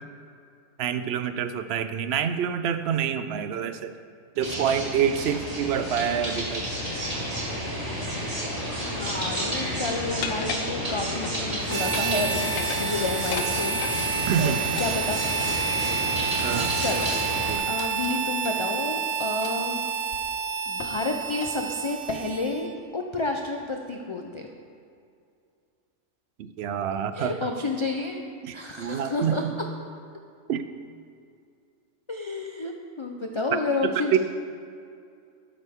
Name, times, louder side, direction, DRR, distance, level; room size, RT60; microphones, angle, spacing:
voice 1, 0.8-3.9 4.4-6.6 6.9-7.0 7.7-7.8 8.6-8.7 14.3-14.6 16.4-16.8 17.5-17.6 26.4-27.5 28.4-29.6 30.5-30.6 33.8-34.2, right 8 dB, 65° right, 10 dB, 0.7 m, -27 dB
sound 1, 4.4-17.6, equal, 30° right, 2.4 m, -31 dB
voice 2, 8.8-13.8 14.4-15.2 16.8-17.1 17.7-19.8 20.7-22.7 22.9-24.5 27.1-28.2 28.5-29.4 32.1-34.2, left 2 dB, 40° left, 3 dB, 0.4 m, -30 dB
sound 2, 10.2-11.4 11.7-12.2 12.5-14.0 14.8-15.8 16.4-18.6 19.4-19.7 20.1-20.2 20.8-21.1 21.3-21.6 22.1-22.4, left 7 dB, 80° left, 1.0 m, -38 dB
Harmonica, 11.7-22.8, right 6 dB, 90° right, 1.4 m, -29 dB
12.5 x 9.0 x 3.6 m, 2.4 s
omnidirectional pair, 1.4 m